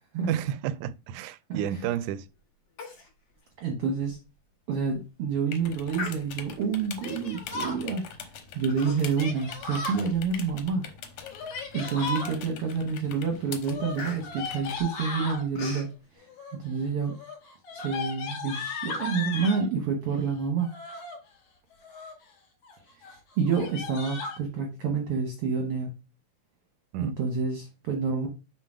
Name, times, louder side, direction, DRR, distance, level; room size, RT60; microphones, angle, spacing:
voice 1, 0.3-2.3 26.9-27.2, right 11 dB, 80° right, 1.9 m, -31 dB
voice 2, 1.5-1.9 3.6-4.2 4.7-8.0 8.5-10.8 11.7-15.9 16.2-16.3 16.6-17.1 17.7-20.7 23.0-25.9 27.0-28.3, right 5 dB, 60° right, 1.6 m, -28 dB
Human voice, 2.8-3.1 3.4-3.5 4.0-4.1 4.7-5.0 5.9-6.7 7.4-7.6 8.7-9.3 9.7-10.7 11.2-11.3 11.8-12.3 12.8-13.0 13.3-15.9, left 4 dB, 55° left, 2.6 m, -41 dB
sound 1, 5.5-14.8, left 7 dB, 90° left, 2.5 m, -44 dB
Yell, 7.0-7.8 9.2-10.0 11.2-12.3 13.6-15.4 16.3-16.7 17.0-19.7 20.6-21.2 21.7-22.2 22.6-22.8 23.0-23.1 23.5-24.4, left 3 dB, 70° left, 3.2 m, -36 dB
6.6 x 3.8 x 4.9 m
omnidirectional pair, 3.6 m